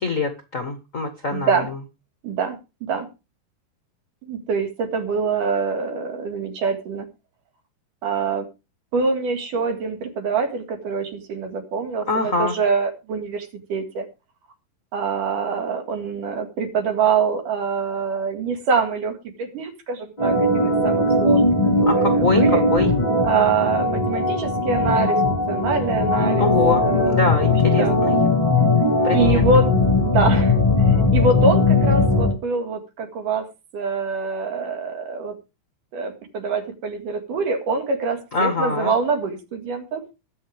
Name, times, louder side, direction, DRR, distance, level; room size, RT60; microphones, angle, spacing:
voice 1, 0.0-1.6 12.1-12.5 21.9-22.4 22.7-22.9 26.4-28.2 29.0-29.4 38.3-38.9, left 3 dB, 55° left, 7 dB, 0.9 m, -24 dB
voice 2, 1.3-1.7 2.2-3.1 4.3-7.1 8.0-8.5 8.9-14.1 14.9-21.4 21.8-22.6 23.2-26.5 26.8-28.0 29.1-29.7 30.0-30.6 30.9-33.5 33.7-35.3 35.9-40.0, right 4 dB, 65° right, 6 dB, 3.5 m, -24 dB
Organ, 20.2-32.3, left 2 dB, 15° left, 1.9 m, -19 dB
21.0 x 7.2 x 3.5 m, 0.28 s
omnidirectional pair, 4.1 m